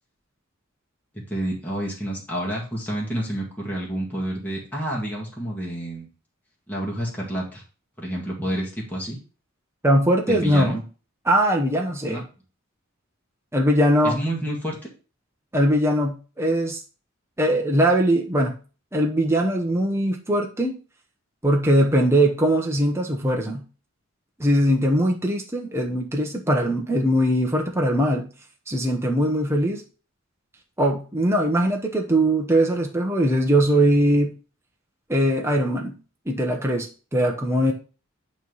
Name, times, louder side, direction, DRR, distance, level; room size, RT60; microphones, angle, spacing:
voice 1, 1.3-6.1 6.7-7.6 8.0-9.2 10.3-10.8 12.1-12.2 14.0-14.8, right 1 dB, 10° left, -4 dB, 1.9 m, -29 dB
voice 2, 9.8-10.8 11.2-12.2 13.5-14.2 15.5-16.8 17.4-18.6 18.9-20.8 21.4-23.6 24.4-28.3 28.7-29.8 30.8-34.3 35.1-36.0 36.3-37.7, right 1 dB, 15° right, 0 dB, 0.9 m, -21 dB
9.0 x 3.2 x 5.4 m, 0.35 s
head